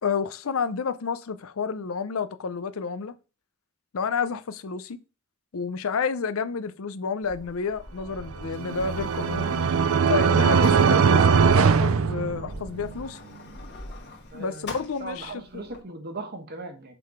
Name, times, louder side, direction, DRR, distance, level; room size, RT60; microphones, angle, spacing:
voice 1, 0.0-3.1 3.9-5.0 5.5-9.5 10.1-13.2 14.3-15.4, left 5 dB, 80° left, 0.6 m, -30 dB
Sliding door, 7.2-15.8, left 1 dB, 55° left, 1.8 m, -43 dB
sound 1, 8.3-12.9, right 6 dB, 75° right, 0.5 m, -20 dB
voice 2, 14.3-14.7 15.0-17.0, right 2 dB, 50° right, 1.3 m, -38 dB
6.7 x 3.7 x 4.8 m
head